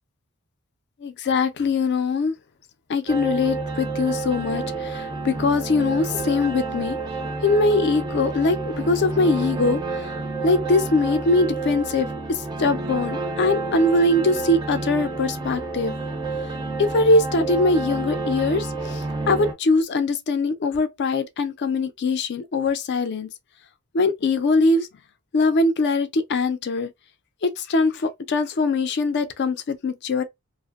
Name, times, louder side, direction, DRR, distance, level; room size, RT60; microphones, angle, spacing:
voice 1, 1.0-2.3 2.9-7.0 7.4-10.1 10.4-16.0 16.8-23.3 23.9-24.9 25.3-26.9 27.4-30.2, left 3 dB, 50° left, 0.4 m, -22 dB
sound 1, 3.1-19.5, right 3 dB, 20° right, 0.4 m, -29 dB
2.8 x 2.0 x 2.2 m
head